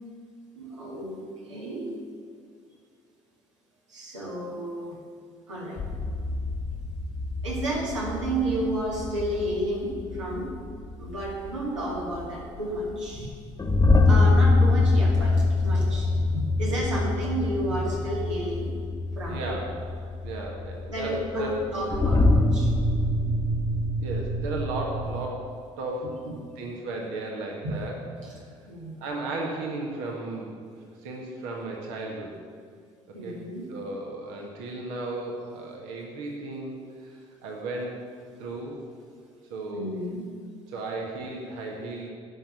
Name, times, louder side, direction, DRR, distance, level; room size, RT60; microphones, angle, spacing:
voice 1, 0.6-1.2 1.5-2.0 3.9-5.0 5.5-5.8 7.4-10.5 11.0-13.3 13.7-18.7 19.2-19.5 20.9-22.7 26.0-26.5 27.6-27.8 28.2-28.3 28.7-29.0 33.1-33.7 39.7-40.3, right 1 dB, 80° right, -3 dB, 2.2 m, -31 dB
sound 1, 5.8-25.2, left 2 dB, 25° left, 1.1 m, -25 dB
voice 2, 19.3-19.8 20.2-21.6 24.0-25.5 25.8-26.1 26.6-28.4 29.0-30.7 31.0-32.3 33.2-33.4 33.7-38.0 38.4-38.8 39.5-39.9 40.7-42.1, right 2 dB, 65° right, -1 dB, 1.5 m, -35 dB
11.0 x 6.0 x 7.4 m, 2.2 s
figure-of-eight pair, 50°, 15 cm